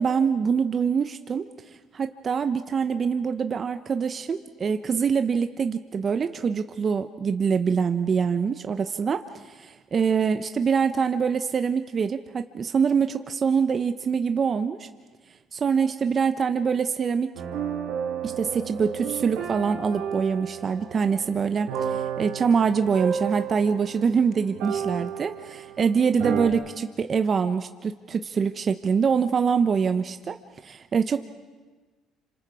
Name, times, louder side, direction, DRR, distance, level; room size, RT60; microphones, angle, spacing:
voice 1, 0.0-1.5 1.9-14.9 15.5-17.3 18.2-30.4 30.6-31.3, right 6 dB, 40° right, 8 dB, 1.0 m, -24 dB
sound 1, 17.3-25.8 26.2-26.5, right 8 dB, 80° right, 3.4 m, -32 dB
28.0 x 26.0 x 4.9 m, 1.3 s
supercardioid pair, 80°, 0 cm